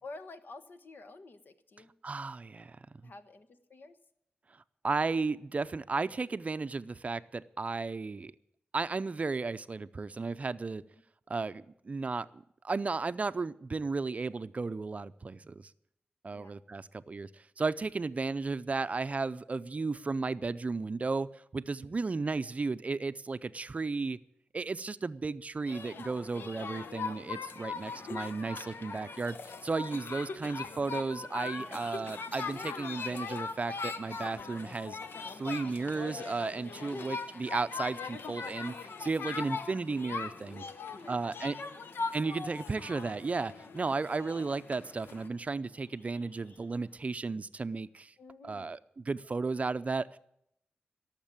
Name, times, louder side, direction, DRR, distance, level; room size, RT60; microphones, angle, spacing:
voice 1, 0.0-1.9 3.0-4.0 10.8-10.9 16.3-16.6 21.8-22.3 27.6-28.2 31.5-31.8 36.7-37.1 40.4-41.9 48.2-48.8, left 3 dB, 60° left, 1.2 m, -50 dB
voice 2, 2.0-2.8 3.0-3.1 4.8-8.3 8.7-10.8 11.3-15.7 16.2-24.2 24.5-35.0 35.4-40.6 41.1-41.5 42.1-48.1 48.4-50.2, right 4 dB, 40° right, 0.5 m, -34 dB
sound 1, 25.7-45.3, left 4 dB, 85° left, 1.0 m, -40 dB
sound 2, 31.2-47.0, left 1 dB, 40° left, 2.8 m, -60 dB
17.5 x 7.4 x 8.8 m
wide cardioid pair, 95°, 4 cm